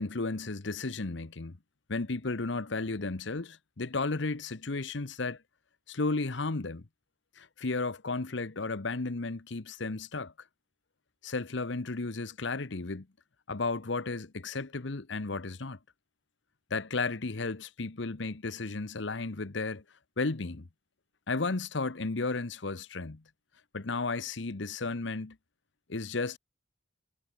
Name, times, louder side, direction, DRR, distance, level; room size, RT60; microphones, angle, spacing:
voice 1, 0.0-1.6 1.9-5.4 5.9-6.8 7.4-10.3 11.2-13.1 13.5-15.8 16.7-19.8 20.2-20.7 21.3-23.2 23.7-25.4 25.9-26.4, left 3 dB, 65° left, 1.0 m, -33 dB
head